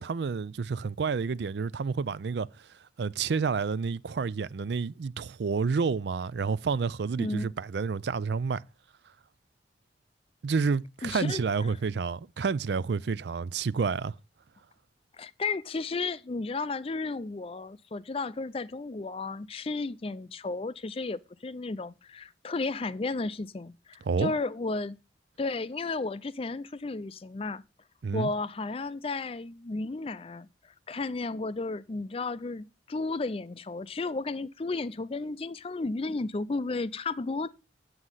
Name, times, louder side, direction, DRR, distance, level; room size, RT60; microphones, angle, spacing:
voice 1, 0.0-2.5 3.0-8.6 10.4-14.1 24.1-24.3 28.0-28.3, right 5 dB, 70° right, 0.4 m, -29 dB
voice 2, 7.2-7.5 11.0-11.4 11.7-11.8 15.2-25.0 25.4-27.6 28.1-30.5 30.9-37.5, left 3 dB, 30° left, 0.4 m, -33 dB
8.1 x 7.7 x 5.5 m
head